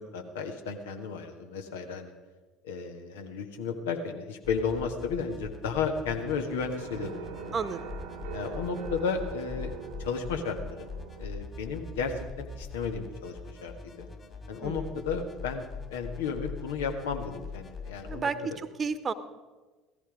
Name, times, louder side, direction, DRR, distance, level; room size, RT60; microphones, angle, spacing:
voice 1, 0.0-2.1 2.6-7.5 8.3-9.7 10.0-10.9 11.2-14.1 14.5-18.6, left 5 dB, 70° left, 5 dB, 1.5 m, -33 dB
sound 1, 4.4-18.2, left 4 dB, 30° left, 2.9 m, -42 dB
sound 2, 6.1-11.3, right 7 dB, 70° right, 1.2 m, -43 dB
voice 2, 14.6-14.9 18.0-19.1, right 5 dB, 30° right, 13 dB, 1.1 m, -32 dB
17.0 x 14.0 x 5.1 m, 1.3 s
figure-of-eight pair, 60°, 0 cm